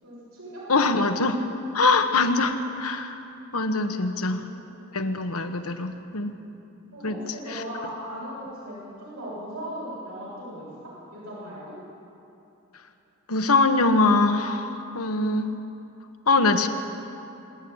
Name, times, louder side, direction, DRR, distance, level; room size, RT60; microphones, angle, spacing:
voice 1, 0.0-1.0 4.1-5.0 6.9-11.8, equal, 85° right, -7 dB, 6.9 m, -38 dB
voice 2, 0.7-1.5 1.7-3.2 3.5-4.4 4.9-6.3 7.0-7.2 7.5-7.6 13.3-15.5 16.3-16.7, left 3 dB, 85° left, 7 dB, 1.4 m, -23 dB
25.5 x 11.5 x 8.9 m, 2.8 s
head